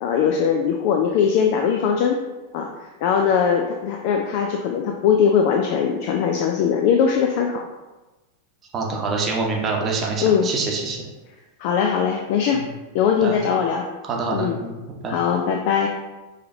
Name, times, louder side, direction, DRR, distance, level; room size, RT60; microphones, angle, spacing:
voice 1, 0.0-2.2 2.5-2.7 3.0-7.7 10.2-10.5 11.6-12.7 12.9-13.8 14.3-14.6 15.1-15.9, left 7 dB, 45° left, 2 dB, 0.4 m, -20 dB
voice 2, 8.7-11.0 12.5-12.7 13.2-13.4 14.0-14.8 15.0-15.1, right 3 dB, 25° right, -1 dB, 0.9 m, -25 dB
5.6 x 3.3 x 2.6 m, 1.1 s
figure-of-eight pair, 90°, 0 cm